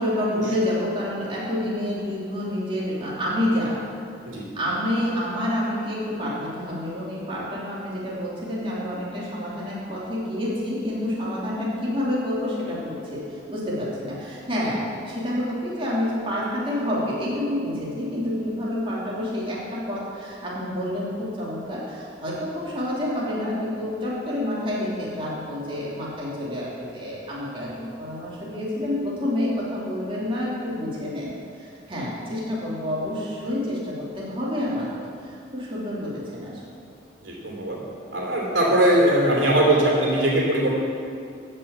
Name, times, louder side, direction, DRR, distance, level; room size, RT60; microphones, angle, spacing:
voice 1, 0.0-3.8 4.5-31.3 31.6-36.6, left 1 dB, 30° right, -7 dB, 2.9 m, -28 dB
voice 2, 37.2-37.8 38.1-40.7, right 1 dB, 90° right, -3 dB, 3.1 m, -20 dB
14.5 x 5.6 x 8.2 m, 2.4 s
head